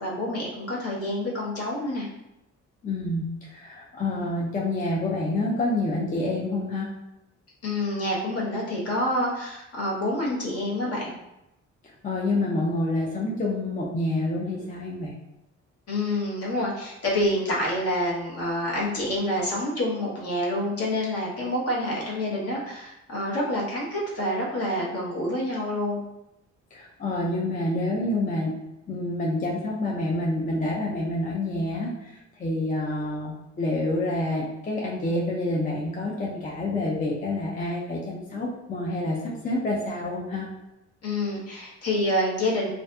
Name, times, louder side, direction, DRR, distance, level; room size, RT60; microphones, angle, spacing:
voice 1, 0.0-2.1 7.6-11.1 15.9-26.0 41.0-42.7, left 1 dB, 50° left, -4 dB, 0.9 m, -27 dB
voice 2, 2.8-6.9 11.8-15.1 26.7-28.5 28.9-40.5, left 2 dB, 25° left, -4 dB, 0.4 m, -28 dB
2.5 x 2.5 x 2.2 m, 0.90 s
cardioid pair, 90°, 30 cm